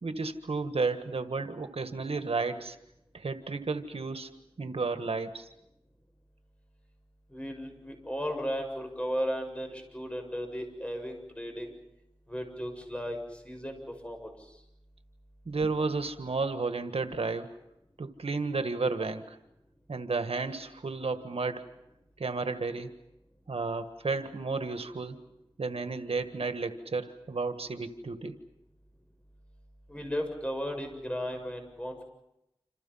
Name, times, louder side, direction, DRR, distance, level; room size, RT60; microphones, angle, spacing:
voice 1, 0.0-2.8 3.1-5.5 15.4-17.5 18.0-19.4 19.9-21.6 22.2-22.9 23.5-25.2 25.6-28.3, right 4 dB, 85° right, 9 dB, 1.6 m, -32 dB
voice 2, 7.3-11.7 12.3-13.2 13.4-14.5 29.9-32.0, equal, 10° left, 4 dB, 7.2 m, -35 dB
28.0 x 27.5 x 5.7 m, 0.84 s
wide cardioid pair, 55°, 10 cm